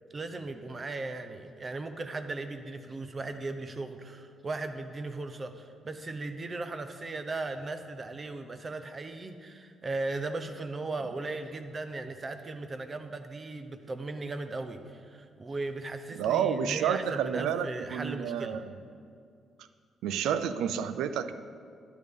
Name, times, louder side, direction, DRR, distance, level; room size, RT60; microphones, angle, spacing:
voice 1, 0.1-18.6, right 3 dB, 35° right, 8 dB, 0.8 m, -37 dB
voice 2, 16.2-18.7 20.0-21.3, right 8 dB, 90° right, 12 dB, 0.5 m, -30 dB
12.5 x 10.0 x 3.7 m, 2.3 s
cardioid pair, 90°, 0 cm